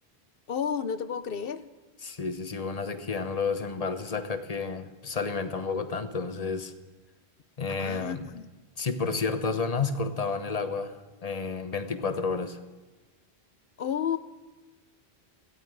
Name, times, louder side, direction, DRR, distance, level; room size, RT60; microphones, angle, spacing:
voice 1, 0.5-1.6 7.7-8.5 13.8-14.2, left 7 dB, 60° left, 13 dB, 0.9 m, -31 dB
voice 2, 2.0-6.7 7.6-8.2 8.8-11.0 11.2-12.6, left 4 dB, 35° left, 10 dB, 1.0 m, -31 dB
18.0 x 15.0 x 4.9 m, 1.2 s
omnidirectional pair, 1.1 m